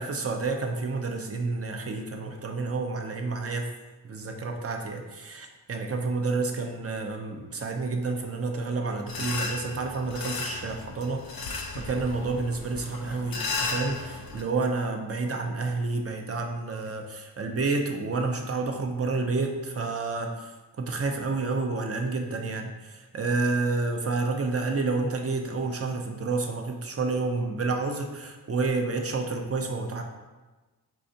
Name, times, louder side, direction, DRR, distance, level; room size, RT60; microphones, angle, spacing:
voice 1, 0.0-3.7 4.0-20.5 20.8-30.0, right 3 dB, 35° right, 3 dB, 0.5 m, -29 dB
sound 1, 9.1-14.4, left 4 dB, 60° left, 0.6 m, -35 dB
4.8 x 3.3 x 2.7 m, 1.2 s
wide cardioid pair, 90°, 40 cm